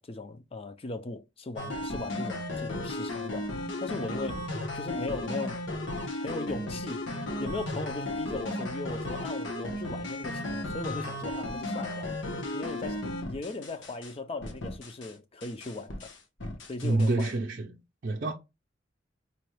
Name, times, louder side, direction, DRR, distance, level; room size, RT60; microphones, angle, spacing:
voice 1, 0.0-5.6 6.2-12.1 12.5-16.1 16.7-17.4, left 3 dB, 30° left, 0.5 m, -38 dB
sound 1, 1.6-14.1 14.4-15.1 15.4-17.3, left 1 dB, 75° left, 1.0 m, -35 dB
voice 2, 16.8-17.8 18.0-18.3, right 2 dB, 50° right, 0.5 m, -27 dB
4.1 x 2.3 x 3.1 m
head